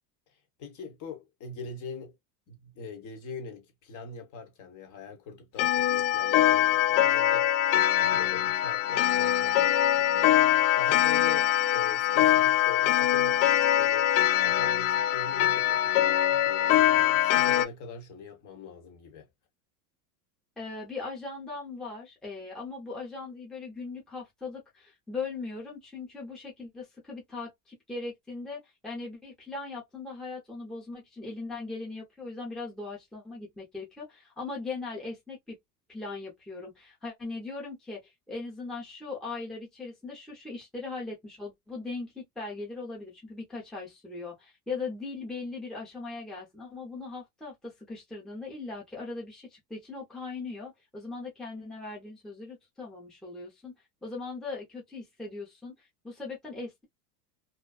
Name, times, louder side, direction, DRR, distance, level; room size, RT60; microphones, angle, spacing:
voice 1, 0.3-2.2 2.5-7.7 7.9-19.3, left 4 dB, 40° left, 1.0 m, -43 dB
Clock, 5.6-17.6, left 12 dB, 60° left, 0.5 m, -23 dB
voice 2, 20.6-35.6 35.9-53.8 54.0-56.8, left 3 dB, ahead, 0.7 m, -39 dB
2.6 x 2.2 x 2.3 m
supercardioid pair, 125°, 48 cm